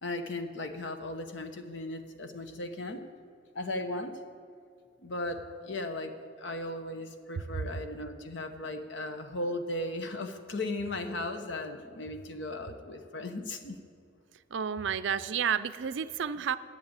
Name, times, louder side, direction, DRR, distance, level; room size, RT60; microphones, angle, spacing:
voice 1, 0.0-3.1 3.5-4.2 5.0-13.8, left 2 dB, 65° left, 7 dB, 1.0 m, -37 dB
voice 2, 14.5-16.6, right 7 dB, 70° right, 13 dB, 0.4 m, -31 dB
10.5 x 7.4 x 8.8 m, 2.4 s
head